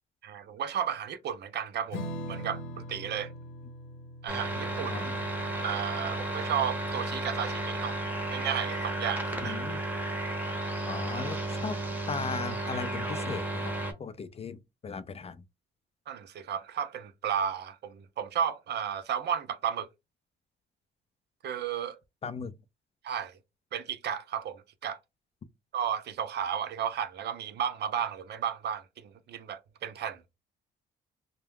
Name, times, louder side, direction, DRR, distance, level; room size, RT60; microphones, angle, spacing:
voice 1, 0.2-3.3 4.2-5.1 5.6-8.0 8.3-9.6 16.1-19.9 21.4-22.0 23.0-23.4 23.7-25.0 25.7-30.2, right 8 dB, 60° right, 0.5 m, -33 dB
Strum, 1.9-8.8, equal, 75° left, 0.8 m, -43 dB
sound 1, 4.3-13.9, right 2 dB, 10° right, 0.7 m, -33 dB
voice 2, 9.4-9.8 10.8-13.7 14.0-15.4 22.2-22.5, left 5 dB, 30° left, 0.4 m, -37 dB
2.3 x 2.2 x 3.3 m
cardioid pair, 90°, 20 cm